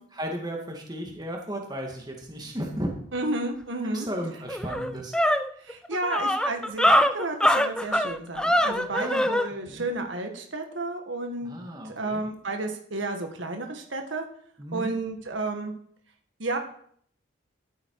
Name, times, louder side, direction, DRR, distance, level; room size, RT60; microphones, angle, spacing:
voice 1, 0.1-2.9 3.9-5.2 8.9-9.3 9.7-9.9 11.4-12.2 14.6-15.0, equal, 20° right, 1 dB, 2.1 m, -34 dB
voice 2, 3.1-4.1 5.6-11.5 11.8-14.2 14.7-15.7 16.4-16.6, right 2 dB, 75° right, 4 dB, 1.7 m, -31 dB
sound 1, 4.0-4.1 4.5-9.5, equal, 5° left, 0.5 m, -23 dB
12.5 x 9.0 x 4.8 m, 0.62 s
head